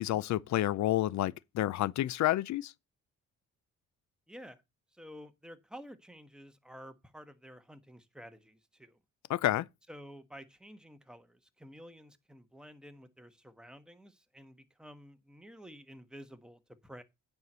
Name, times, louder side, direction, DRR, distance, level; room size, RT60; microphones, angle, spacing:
voice 1, 0.0-2.7 9.3-9.6, left 14 dB, 65° left, 0.6 m, -29 dB
voice 2, 4.3-4.6 4.9-9.0 9.9-17.0, equal, 5° right, 1.4 m, -51 dB
9.4 x 4.6 x 6.7 m
cardioid pair, 90°, 30 cm